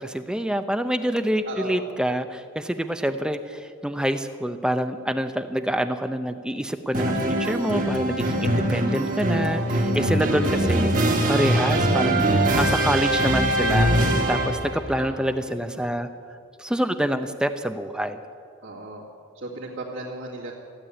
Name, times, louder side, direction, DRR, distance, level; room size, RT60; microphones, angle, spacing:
voice 1, 0.0-16.1 16.6-18.2, equal, 5° right, 9 dB, 0.5 m, -26 dB
voice 2, 1.4-1.8 15.0-15.9 18.6-19.1 19.3-20.5, right 2 dB, 55° right, -7 dB, 2.4 m, -36 dB
sound 1, 6.9-14.8, right 1 dB, 40° right, 2.0 m, -22 dB
15.5 x 8.9 x 10.0 m, 2.4 s
head